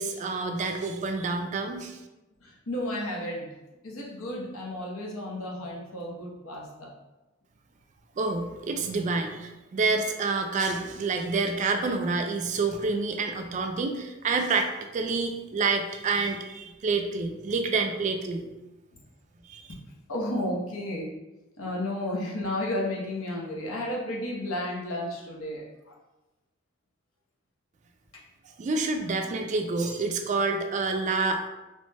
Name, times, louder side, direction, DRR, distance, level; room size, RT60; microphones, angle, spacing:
voice 1, 0.0-2.0 8.2-18.5 19.4-19.7 28.6-31.5, right 3 dB, 35° right, 4 dB, 0.3 m, -28 dB
voice 2, 2.4-3.6 3.8-6.9 18.9-19.0 20.1-21.1 21.6-25.9, left 1 dB, 90° left, -3 dB, 0.8 m, -33 dB
3.0 x 2.1 x 3.3 m, 1.0 s
head